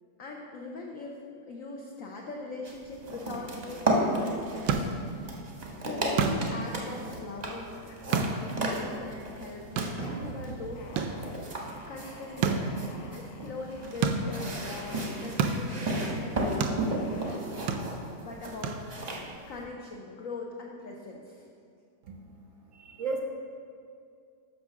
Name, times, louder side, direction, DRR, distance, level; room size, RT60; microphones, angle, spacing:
voice 1, 0.2-1.2 1.5-5.3 5.8-11.1 11.4-11.6 11.9-17.5 17.7-19.2 19.5-21.5, left 3 dB, 65° left, -1 dB, 0.9 m, -41 dB
sound 1, 2.6-19.6, right 1 dB, 30° right, 0.7 m, -34 dB
sound 2, 4.1-19.3, right 5 dB, 90° right, 1.3 m, -34 dB
sound 3, 7.9-8.6 9.0-9.5 9.8-10.2 10.7-15.3 15.9-16.2 16.8-17.8, left 4 dB, 80° left, 1.5 m, -50 dB
voice 2, 22.7-23.2, right 4 dB, 65° right, 2 dB, 0.8 m, -33 dB
6.1 x 5.5 x 6.3 m, 2.3 s
omnidirectional pair, 2.0 m